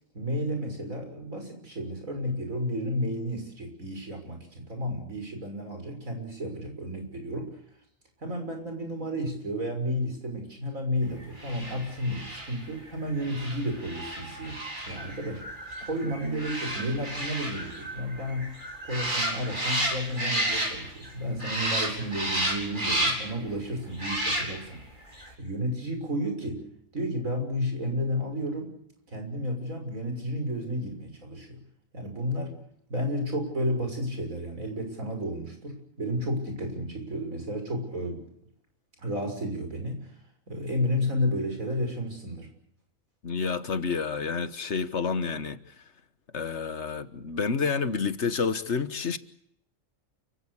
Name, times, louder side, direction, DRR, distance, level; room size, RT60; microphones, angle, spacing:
voice 1, 0.1-7.5 8.2-15.4 15.8-18.5 18.8-24.8 25.4-26.7 26.9-28.7 29.1-31.6 31.9-32.6 32.9-38.3 39.0-40.1 40.5-42.5, equal, 85° right, 6.5 m, -32 dB
sound 1, 11.3-21.1 21.4-23.4 23.9-24.8 25.1-25.3, right 1 dB, 35° right, 5.0 m, -32 dB
voice 2, 43.2-45.6 46.3-49.2, left 5 dB, 60° left, 1.6 m, -29 dB
29.0 x 16.0 x 8.3 m
omnidirectional pair, 1.4 m